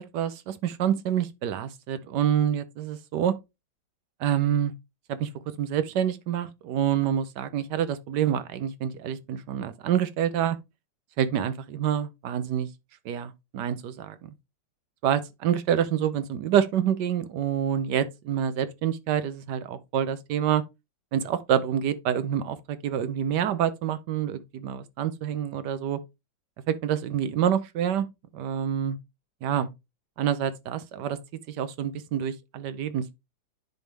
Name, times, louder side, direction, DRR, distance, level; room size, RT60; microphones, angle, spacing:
voice 1, 0.0-3.3 4.2-4.7 5.1-5.3 5.6-10.6 11.2-12.7 13.0-14.3 15.0-20.6 21.1-26.0 26.7-28.1 28.3-29.0 29.4-29.7 30.2-31.2 31.5-33.1, right 9 dB, 70° right, 1.2 m, -27 dB
10.5 x 3.6 x 3.3 m
omnidirectional pair, 2.1 m